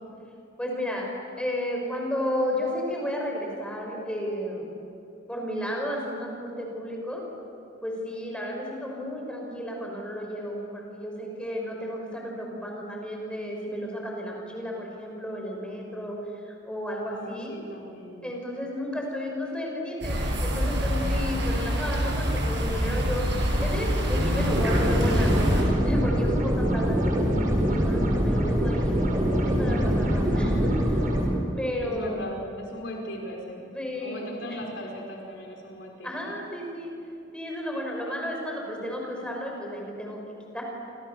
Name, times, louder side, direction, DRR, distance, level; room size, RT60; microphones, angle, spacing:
voice 1, 0.6-1.1 1.4-4.7 5.3-7.2 7.8-16.2 16.5-17.5 18.2-23.2 23.6-27.3 27.7-31.0 31.6-32.2 33.6-34.6 36.0-36.9 37.3-40.2 40.5-40.6, left 1 dB, 5° left, 0 dB, 6.1 m, -33 dB
voice 2, 17.0-18.3 31.8-33.6 34.0-36.4, equal, 65° left, 0 dB, 5.1 m, -38 dB
sound 1, 20.0-25.6, equal, 65° right, 7.0 m, -26 dB
sound 2, 24.0-31.3, equal, 45° right, 5.6 m, -24 dB
29.0 x 28.0 x 7.1 m, 2.6 s
head